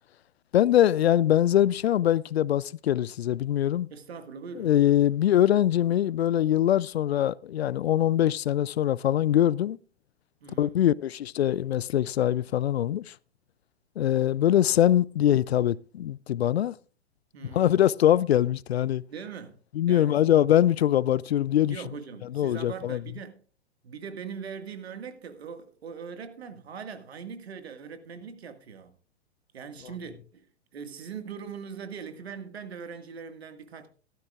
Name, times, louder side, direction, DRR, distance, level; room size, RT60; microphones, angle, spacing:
voice 1, 0.5-3.9 4.6-9.8 10.6-13.1 14.0-16.7 17.5-19.0 19.8-21.8 22.3-23.0, left 11 dB, 75° left, 0.5 m, -23 dB
voice 2, 3.9-4.8 10.4-10.8 17.3-17.8 19.1-19.6 19.9-20.2 21.7-23.4 23.8-29.0 29.5-30.5 30.7-33.9, right 6 dB, 70° right, 1.9 m, -41 dB
16.0 x 13.5 x 2.4 m
hypercardioid pair, 110°, 32 cm